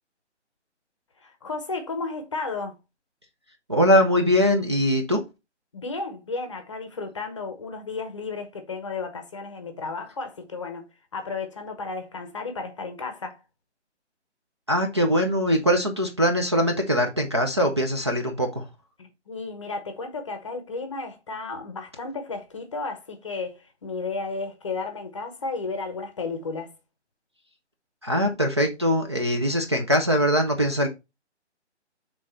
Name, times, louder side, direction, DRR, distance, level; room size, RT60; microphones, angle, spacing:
voice 1, 1.2-2.8 5.7-13.4 19.0-26.7, left 4 dB, 25° left, 0.8 m, -33 dB
voice 2, 3.7-5.2 14.7-18.7 28.0-30.9, equal, 25° right, 0.5 m, -22 dB
6.1 x 3.7 x 4.3 m
hypercardioid pair, 165°, 35 cm